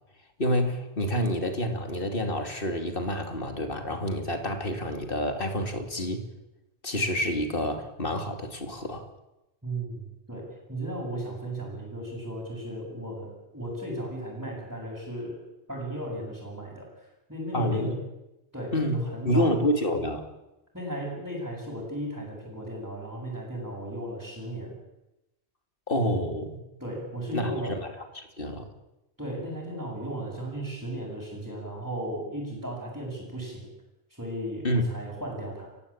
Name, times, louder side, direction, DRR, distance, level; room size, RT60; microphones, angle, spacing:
voice 1, 0.4-6.2 6.8-9.0 17.5-17.9 18.7-20.3 25.9-26.6 27.3-27.5 28.1-28.7 34.6-34.8, equal, 50° left, 6 dB, 2.9 m, -28 dB
voice 2, 9.6-15.4 15.7-18.0 18.5-19.6 20.7-24.8 26.8-27.8 29.2-33.7 34.1-35.7, right 1 dB, 10° right, -7 dB, 7.6 m, -35 dB
29.5 x 15.5 x 8.7 m, 0.95 s
omnidirectional pair, 1.2 m